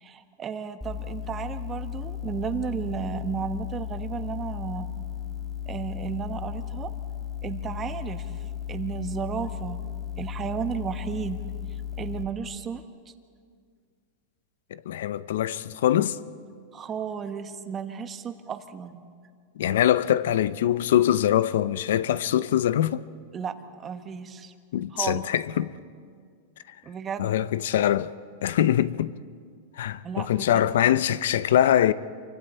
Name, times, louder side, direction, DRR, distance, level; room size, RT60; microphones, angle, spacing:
voice 1, 0.0-4.9 5.7-6.9 7.4-8.3 8.7-9.8 10.2-11.4 12.0-12.8 16.7-19.0 23.3-24.5 24.9-25.2 26.8-27.3 30.0-30.7, right 7 dB, 25° right, 1.2 m, -33 dB
sound 1, 0.8-12.2, left 9 dB, 5° right, 1.8 m, -35 dB
voice 2, 14.7-16.2 19.6-23.0 24.7-25.7 27.2-28.1 28.4-29.1 29.8-31.9, left 11 dB, 80° left, 0.7 m, -23 dB
28.0 x 24.5 x 4.4 m
supercardioid pair, 135°, 0 cm